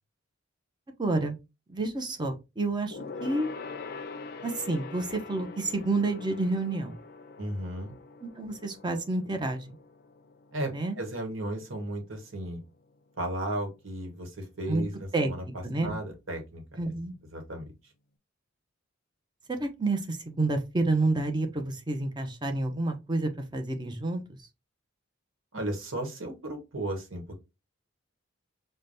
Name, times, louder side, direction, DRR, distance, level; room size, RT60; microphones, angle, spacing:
voice 1, 1.0-1.4 1.7-3.5 4.4-6.9 8.4-9.6 10.7-11.0 14.7-14.8 15.1-15.3 15.6-16.0 16.8-17.2 19.6-24.2, right 2 dB, 20° right, 0.6 m, -29 dB
Gong, 2.9-12.7 13.0-13.2 13.5-13.6, left 4 dB, 50° left, 0.4 m, -44 dB
voice 2, 7.4-7.9 10.5-12.6 13.2-16.9 17.3-17.6 25.5-27.3, right 1 dB, 85° right, 1.1 m, -35 dB
5.0 x 2.2 x 2.6 m
head